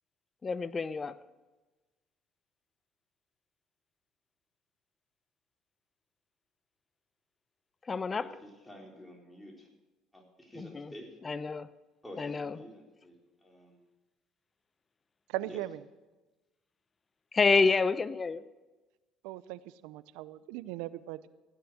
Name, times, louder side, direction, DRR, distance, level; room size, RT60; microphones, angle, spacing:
voice 1, 0.4-1.2 7.9-8.3 10.6-10.9 11.2-11.7 12.2-12.6 17.3-18.4, left 4 dB, 30° left, 16 dB, 0.7 m, -28 dB
voice 2, 8.2-9.7 10.1-11.2 12.0-13.2 13.4-13.8 15.5-15.6, equal, 10° left, 0 dB, 4.0 m, -49 dB
voice 3, 15.3-15.8 19.2-21.3, right 15 dB, 75° right, 16 dB, 0.5 m, -39 dB
16.0 x 9.8 x 6.3 m, 1.2 s
hypercardioid pair, 65°, 0 cm